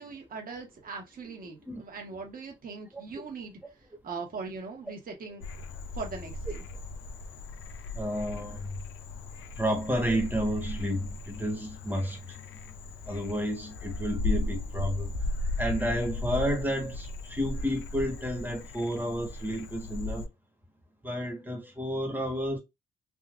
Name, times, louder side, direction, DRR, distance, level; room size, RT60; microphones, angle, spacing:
voice 1, 0.0-3.6 4.0-5.4 5.9-6.6, right 4 dB, 45° right, 1.3 m, -40 dB
voice 2, 1.4-1.8 7.9-8.7 9.6-12.4 13.1-15.1 15.6-20.3 21.0-22.6, equal, 10° right, 1.3 m, -31 dB
Frog, 5.4-20.3, left 2 dB, 90° left, 0.5 m, -36 dB
3.6 x 2.5 x 2.5 m
cardioid pair, 90°, 20 cm